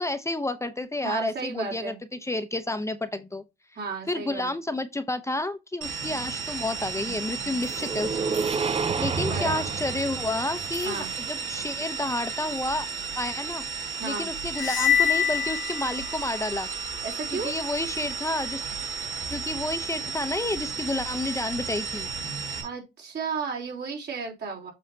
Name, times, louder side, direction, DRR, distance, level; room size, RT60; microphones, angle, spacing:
voice 1, 0.0-3.4 4.1-8.4 8.7-12.9 13.2-13.6 14.0-16.7 17.3-18.6 19.3-22.1, left 2 dB, 15° left, 0.7 m, -30 dB
voice 2, 1.0-2.0 3.8-4.5 9.2-9.6 10.9-11.1 14.0-14.3 17.0-17.5 22.6-24.7, right 5 dB, 60° right, 3.6 m, -33 dB
sound 1, 5.8-22.6, right 5 dB, 75° right, 2.1 m, -34 dB
sound 2, 7.6-11.7, right 5 dB, 30° right, 0.6 m, -31 dB
sound 3, 14.5-16.4, left 9 dB, 85° left, 1.0 m, -25 dB
7.4 x 5.5 x 2.8 m
cardioid pair, 90°, 20 cm